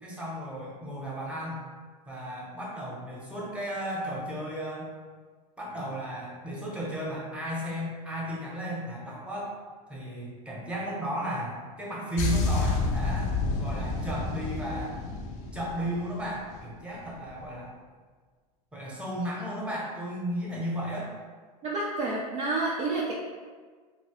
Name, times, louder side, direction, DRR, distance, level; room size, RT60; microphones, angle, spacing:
voice 1, 0.0-1.6 2.1-4.9 5.6-9.6 9.9-13.3 13.6-15.0 15.5-17.7 18.7-21.1, equal, 5° right, -4 dB, 0.9 m, -34 dB
sound 1, 12.2-16.7 17.0-17.3, left 3 dB, 35° left, 0.5 m, -30 dB
voice 2, 21.6-23.1, right 2 dB, 30° right, -4 dB, 0.4 m, -29 dB
2.9 x 2.7 x 3.0 m, 1.5 s
hypercardioid pair, 100°, 20 cm